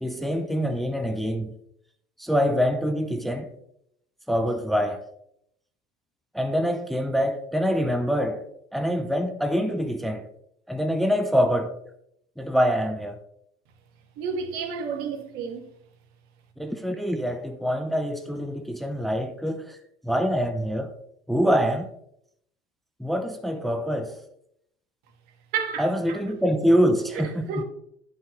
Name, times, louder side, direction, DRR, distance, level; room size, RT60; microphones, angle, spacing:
voice 1, 0.0-1.5 2.2-3.5 4.3-5.0 6.3-8.4 8.7-10.3 10.7-11.7 12.4-13.2 16.6-19.8 20.0-20.9 21.3-21.9 23.0-24.2 25.8-27.6, equal, ahead, 0.5 m, -25 dB
voice 2, 14.2-15.7 25.5-26.2 27.1-27.6, right 6 dB, 85° right, 1.4 m, -31 dB
10.5 x 5.7 x 3.1 m
cardioid pair, 150°, 16 cm